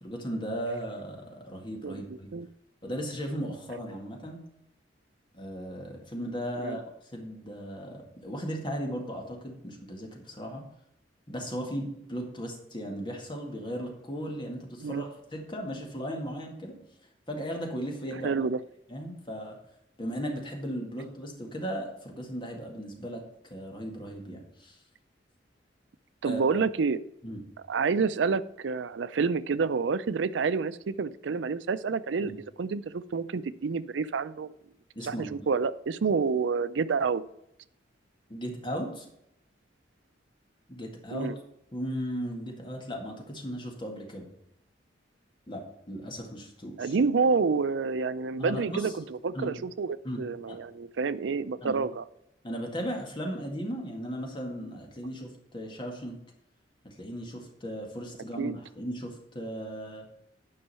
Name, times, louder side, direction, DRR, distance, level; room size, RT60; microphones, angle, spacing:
voice 1, 0.0-2.3 2.8-4.5 5.3-6.8 7.1-10.6 11.3-16.8 17.3-18.4 18.9-19.6 20.0-23.2 23.5-24.8 26.2-26.6 27.2-27.4 32.2-32.3 35.0-35.5 38.3-39.1 40.7-41.4 41.7-44.3 45.5-47.0 48.4-48.9 49.3-49.6 50.0-50.6 51.6-51.8 52.4-56.1 56.8-60.0, equal, 25° left, 1 dB, 1.9 m, -36 dB
voice 2, 1.8-2.5 6.6-6.8 14.8-15.0 18.2-18.6 26.2-27.0 27.7-32.3 32.6-34.5 35.0-37.2 41.1-41.4 46.8-52.0 58.4-58.6, right 5 dB, 90° right, 16 dB, 0.5 m, -28 dB
9.8 x 5.5 x 5.6 m, 0.79 s
head